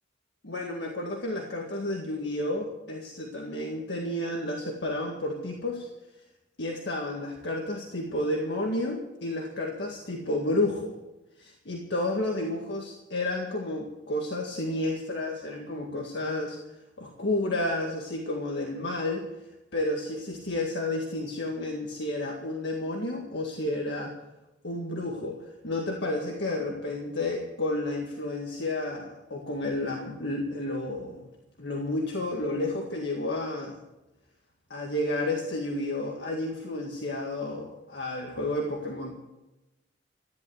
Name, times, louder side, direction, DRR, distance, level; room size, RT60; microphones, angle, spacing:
voice 1, 0.4-5.9 6.6-11.0 11.4-16.6 17.0-19.3 19.7-24.1 24.6-31.2 31.6-33.8 34.7-39.1, left 1 dB, 70° left, 1 dB, 1.9 m, -31 dB
14.5 x 11.0 x 8.1 m, 0.98 s
head